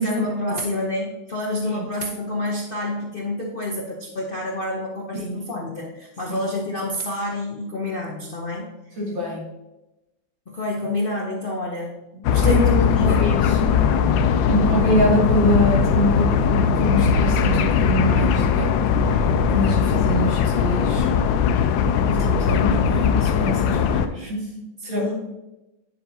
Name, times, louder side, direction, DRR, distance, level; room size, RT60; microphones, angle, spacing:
voice 1, 0.0-9.0 10.5-13.2 23.8-24.0 24.8-25.1, left 2 dB, 45° left, -2 dB, 0.7 m, -28 dB
voice 2, 9.0-9.4 12.3-13.6 14.4-18.7 19.5-21.1 22.0-24.5 24.8-25.0, equal, 75° right, -4 dB, 3.3 m, -24 dB
sound 1, 12.2-24.1, left 7 dB, 80° left, 1.3 m, -19 dB
9.3 x 7.3 x 2.7 m, 0.97 s
omnidirectional pair, 2.1 m